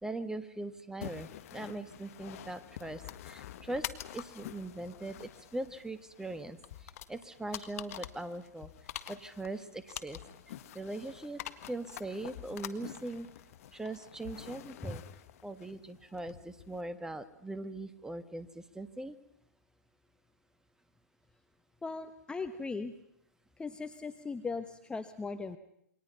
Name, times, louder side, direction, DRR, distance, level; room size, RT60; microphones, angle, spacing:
voice 1, 0.0-3.9 4.1-6.6 7.1-8.7 9.1-10.2 10.7-13.3 13.7-15.0 15.4-19.2, right 2 dB, 5° right, 11 dB, 1.5 m, -40 dB
sound 1, 1.0-16.8, left 12 dB, 55° left, 1.6 m, -47 dB
voice 2, 21.8-22.9 23.6-25.6, left 4 dB, 10° left, 9 dB, 1.1 m, -38 dB
28.5 x 23.5 x 5.7 m, 0.74 s
hypercardioid pair, 115°, 9 cm